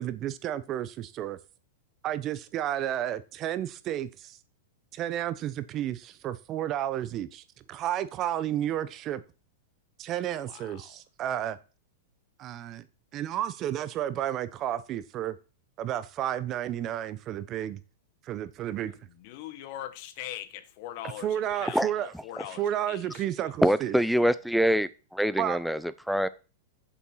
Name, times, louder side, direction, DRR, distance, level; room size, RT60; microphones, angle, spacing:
voice 1, 0.0-1.4 2.0-4.4 4.9-7.4 7.7-9.2 10.0-11.6 12.4-12.8 13.1-15.3 15.8-17.8 18.3-19.0 21.2-22.1 22.6-23.9 25.4-25.6, right 11 dB, 35° right, 0.9 m, -31 dB
voice 2, 10.2-11.0 19.0-23.2, left 12 dB, 50° left, 1.3 m, -42 dB
voice 3, 23.6-26.3, equal, ahead, 0.6 m, -25 dB
7.4 x 7.1 x 5.7 m
hypercardioid pair, 125°, 0 cm